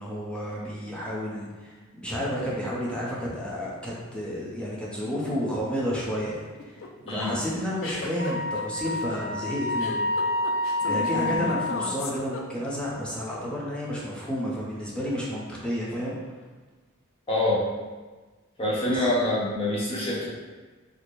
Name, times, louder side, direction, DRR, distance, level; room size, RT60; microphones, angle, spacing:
voice 1, 0.0-6.8 7.1-10.1 10.8-16.2 18.9-19.0, equal, 5° left, -6 dB, 0.6 m, -31 dB
sound 1, 6.6-12.9, left 3 dB, 70° left, 0.4 m, -36 dB
Wind instrument woodwind instrument, 8.2-12.0, left 2 dB, 55° right, 0.7 m, -28 dB
voice 2, 17.3-17.7 18.6-20.3, left 1 dB, 30° left, -7 dB, 0.9 m, -25 dB
4.2 x 2.1 x 3.1 m, 1.3 s
head